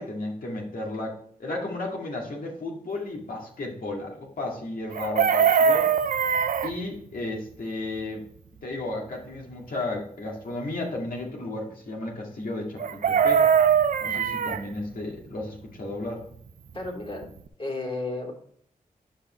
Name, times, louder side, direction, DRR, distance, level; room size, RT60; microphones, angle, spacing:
voice 1, 0.0-5.9 6.6-8.2 8.6-13.5 14.0-16.2, left 2 dB, 70° left, -1 dB, 2.3 m, -33 dB
Chicken rooster, 4.9-6.7 12.8-14.6 16.9-17.0 17.2-17.5, right 7 dB, 60° right, 0.5 m, -21 dB
voice 2, 16.7-17.3 17.6-18.3, left 2 dB, 35° left, 1 dB, 2.9 m, -32 dB
9.9 x 5.5 x 3.2 m, 0.63 s
cardioid pair, 45°, 15 cm